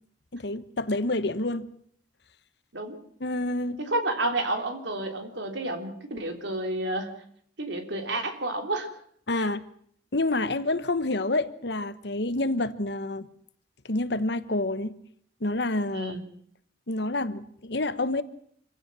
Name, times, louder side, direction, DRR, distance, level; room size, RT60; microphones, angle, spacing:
voice 1, 0.3-1.7 3.2-3.8 9.3-9.7 10.1-13.3 13.9-15.0 15.4-16.1 16.9-18.2, left 2 dB, 65° left, 1.2 m, -28 dB
voice 2, 3.8-7.1 7.6-9.0 9.3-9.5 15.9-16.2, right 2 dB, 70° right, 3.3 m, -30 dB
26.0 x 16.0 x 7.6 m
head